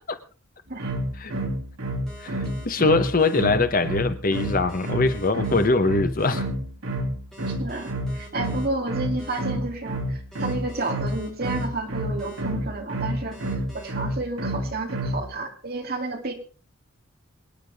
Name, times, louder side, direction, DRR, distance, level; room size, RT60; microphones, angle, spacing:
sound 1, 0.8-15.3, right 1 dB, 85° right, 2.9 m, -28 dB
sound 2, 2.1-2.6 3.2-3.4 4.3-5.7 6.2-6.4 7.3-8.7 9.2-9.4 10.3-11.7 12.2-12.4 13.3-13.9, equal, ahead, 4.9 m, -45 dB
voice 1, 2.2-6.5, left 3 dB, 40° left, 1.0 m, -22 dB
voice 2, 7.5-16.3, right 2 dB, 45° right, 2.5 m, -31 dB
24.5 x 9.9 x 3.5 m
head